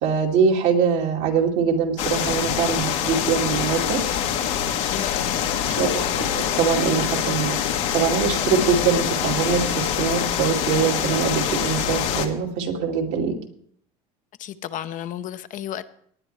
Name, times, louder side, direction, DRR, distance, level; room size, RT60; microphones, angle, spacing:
voice 1, 0.0-4.0 5.8-13.3, right 6 dB, 75° right, 0 dB, 2.4 m, -23 dB
sound 1, 2.0-12.3, left 9 dB, 80° left, 1.4 m, -25 dB
voice 2, 4.9-5.4 5.7-6.1 14.4-15.9, left 11 dB, 45° left, 12 dB, 0.7 m, -33 dB
18.5 x 9.7 x 3.3 m, 0.65 s
supercardioid pair, 100°, 18 cm